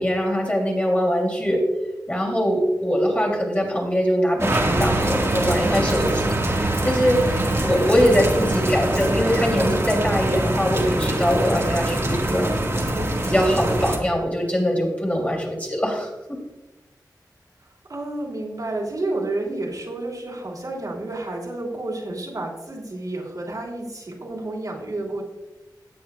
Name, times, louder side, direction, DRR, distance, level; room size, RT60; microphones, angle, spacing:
voice 1, 0.0-1.6 2.1-12.5 13.2-16.4, equal, 20° left, -1 dB, 3.0 m, -22 dB
sound 1, 4.4-14.0, right 1 dB, 40° right, 1.8 m, -23 dB
voice 2, 12.8-13.3 17.9-25.2, right 2 dB, 60° right, -3 dB, 3.1 m, -30 dB
17.0 x 8.8 x 2.4 m, 1.1 s
wide cardioid pair, 85°, 7 cm